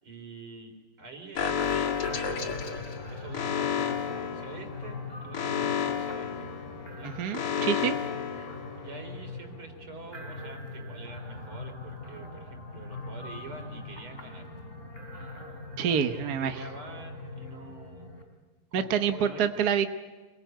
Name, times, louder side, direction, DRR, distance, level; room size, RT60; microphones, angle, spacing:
voice 1, 0.0-6.6 6.9-7.1 8.8-14.5 15.8-18.1 18.7-19.8, right 3 dB, 75° right, 5 dB, 4.9 m, -46 dB
Alarm, 1.4-9.1, left 8 dB, 85° left, 2.7 m, -32 dB
sound 1, 2.0-18.2, left 2 dB, 35° left, 4.1 m, -42 dB
voice 2, 7.2-8.0 15.8-16.6 18.7-19.9, right 8 dB, 55° right, 7 dB, 1.4 m, -27 dB
27.5 x 22.5 x 9.2 m, 1.2 s
omnidirectional pair, 2.4 m